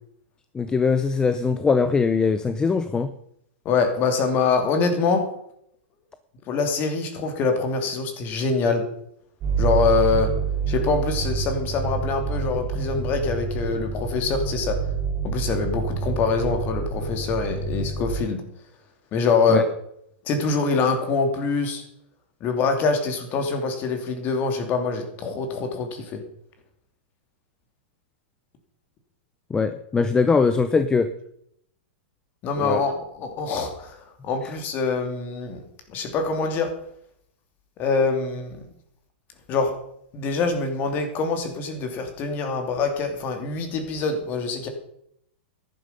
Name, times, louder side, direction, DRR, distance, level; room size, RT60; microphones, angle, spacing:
voice 1, 0.5-3.1 19.5-19.6 29.5-31.1 32.6-32.8, left 5 dB, 10° left, 11 dB, 0.7 m, -21 dB
voice 2, 3.6-5.2 6.5-8.8 9.6-10.3 10.7-14.8 15.2-18.4 19.1-19.6 20.3-21.8 22.4-26.2 32.4-34.0 34.2-35.6 35.9-36.7 37.8-38.7 39.5-39.7 40.1-44.7, left 4 dB, 30° left, 6 dB, 2.8 m, -24 dB
sound 1, 9.4-18.2, right 5 dB, 25° right, 5.5 m, -27 dB
13.5 x 11.5 x 5.3 m, 0.72 s
hypercardioid pair, 145°, 6 cm